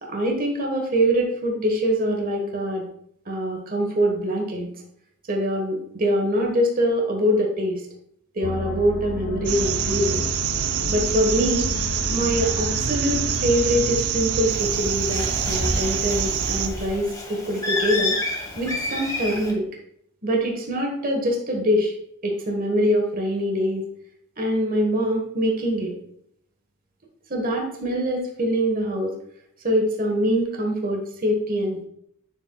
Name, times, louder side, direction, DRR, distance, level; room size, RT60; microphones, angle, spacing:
voice 1, 0.0-2.8 3.3-4.7 5.3-7.8 8.3-10.2 10.9-11.7 12.1-18.1 18.5-19.6 20.2-21.9 22.2-23.8 24.4-25.9 27.3-29.1 29.6-31.8, equal, 40° right, 1 dB, 1.4 m, -24 dB
sound 1, 8.4-14.0, left 3 dB, 50° left, 0.5 m, -32 dB
sound 2, 9.5-16.7, right 7 dB, 85° right, 0.7 m, -25 dB
Bird, 14.5-19.5, left 2 dB, 15° left, 1.2 m, -30 dB
9.1 x 7.2 x 2.3 m, 0.71 s
head